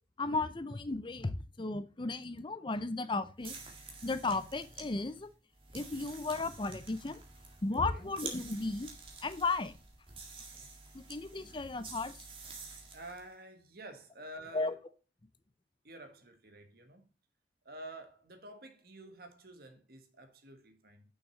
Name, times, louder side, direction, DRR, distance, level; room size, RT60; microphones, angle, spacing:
voice 1, 0.2-3.5 4.0-5.3 5.7-7.2 7.6-8.9 9.2-9.8 10.9-12.1 14.5-14.7, left 3 dB, 25° left, 0.6 m, -35 dB
sound 1, 3.4-13.3, right 4 dB, 30° right, 1.8 m, -49 dB
voice 2, 7.7-8.1 10.4-10.7 12.9-14.8 15.8-17.1 17.6-21.0, right 1 dB, 55° right, 1.5 m, -50 dB
6.4 x 6.2 x 6.2 m
head